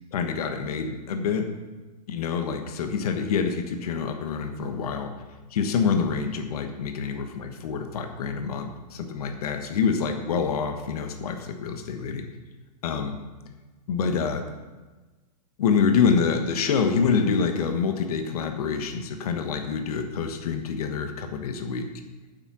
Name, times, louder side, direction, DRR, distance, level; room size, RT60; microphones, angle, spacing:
voice 1, 0.1-1.5 2.1-5.1 5.5-12.3 12.8-13.2 13.9-14.5 15.6-21.9, left 6 dB, 65° left, 6 dB, 1.3 m, -26 dB
9.3 x 7.5 x 6.0 m, 1.2 s
hypercardioid pair, 155°, 21 cm